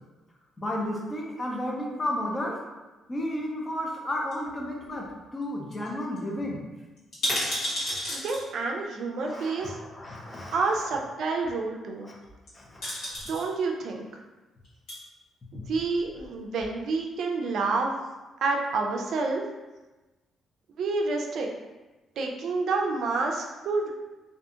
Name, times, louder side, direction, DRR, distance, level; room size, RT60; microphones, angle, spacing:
voice 1, 0.6-2.6 3.1-6.6 9.2-10.9 12.0-12.2 12.5-12.8, left 1 dB, 25° left, -1 dB, 0.6 m, -33 dB
sound 1, 4.3-5.1 5.4-5.5 5.7-5.9 6.2-6.3 7.0-8.4 9.6-9.7 12.3-12.5 12.8-13.5 14.6-15.0 15.6-16.3 16.6-16.7, equal, 75° left, 1.1 m, -32 dB
voice 2, 8.1-9.8 10.5-12.1 13.3-14.2 15.5-17.9 18.4-19.4 20.8-21.5 22.2-23.9, right 3 dB, 70° right, 1 dB, 0.3 m, -28 dB
2.6 x 2.4 x 2.4 m, 1.1 s
cardioid pair, 90°, 0 cm